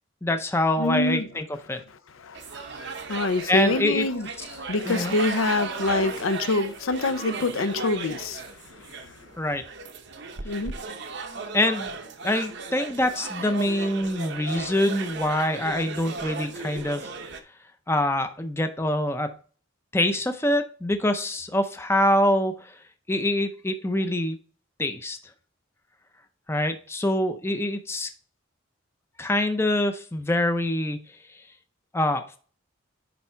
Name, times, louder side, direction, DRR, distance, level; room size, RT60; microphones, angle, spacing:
voice 1, 0.2-1.8 3.5-4.1 4.9-5.1 9.4-9.6 11.5-12.0 12.2-17.0 17.9-19.3 19.9-22.7 23.1-24.4 24.8-25.2 26.5-28.1 29.2-31.0 31.9-32.4, left 1 dB, 10° left, 0.5 m, -25 dB
voice 2, 0.8-1.3 1.7-9.3 10.4-10.7, left 2 dB, 80° left, 0.6 m, -27 dB
sound 1, 2.3-17.4, right 4 dB, 55° right, 0.8 m, -36 dB
10.0 x 3.6 x 4.4 m
head